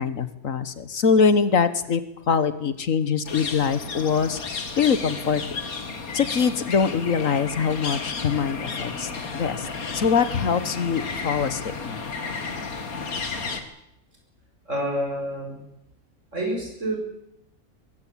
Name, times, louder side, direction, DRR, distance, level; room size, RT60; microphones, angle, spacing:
voice 1, 0.0-4.4 4.8-5.6 6.1-9.7 9.9-12.1, left 6 dB, 65° left, 13 dB, 1.6 m, -23 dB
sound 1, 3.2-13.6, left 4 dB, 80° left, 2.4 m, -33 dB
voice 2, 14.7-15.6 16.3-17.0, right 1 dB, 55° right, 2 dB, 6.7 m, -28 dB
22.5 x 15.5 x 8.6 m, 0.83 s
omnidirectional pair, 1.5 m